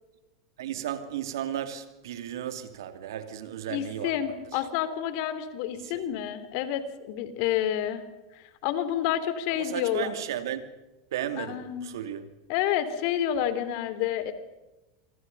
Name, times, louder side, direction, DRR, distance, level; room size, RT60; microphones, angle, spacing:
voice 1, 0.6-4.6 5.8-6.0 9.5-10.8 11.1-12.4, right 10 dB, 80° right, 2.8 m, -35 dB
voice 2, 3.7-8.0 8.3-10.1 11.4-11.9 12.5-14.3, left 11 dB, 60° left, 3.3 m, -29 dB
26.5 x 25.5 x 5.6 m
hypercardioid pair, 110°, 2 cm